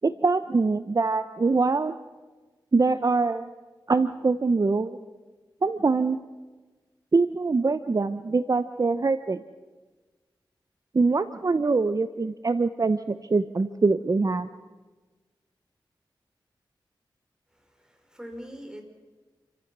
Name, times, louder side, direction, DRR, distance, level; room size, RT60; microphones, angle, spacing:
voice 1, 0.0-1.9 2.7-3.5 3.9-5.0 5.6-6.2 7.1-9.4 10.9-14.5, right 3 dB, 45° right, 12 dB, 0.8 m, -24 dB
voice 2, 17.5-18.8, equal, 10° right, 4 dB, 4.9 m, -43 dB
28.5 x 15.0 x 6.1 m, 1.3 s
cardioid pair, 50°, 8 cm